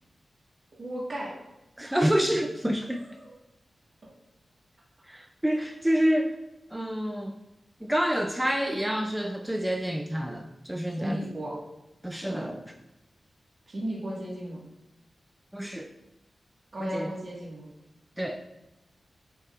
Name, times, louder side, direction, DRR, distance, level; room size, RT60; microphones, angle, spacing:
voice 1, 0.8-1.3 2.9-3.4 11.0-11.6 13.7-14.6 16.7-17.7, equal, 45° right, -5 dB, 1.6 m, -35 dB
voice 2, 1.8-3.0 5.1-6.4 6.7-7.4 7.8-11.2 12.0-12.7 15.5-15.9 16.8-17.1 18.2-18.4, equal, 5° right, 4 dB, 0.3 m, -28 dB
7.4 x 5.2 x 2.4 m, 0.96 s
wide cardioid pair, 120°, 0 cm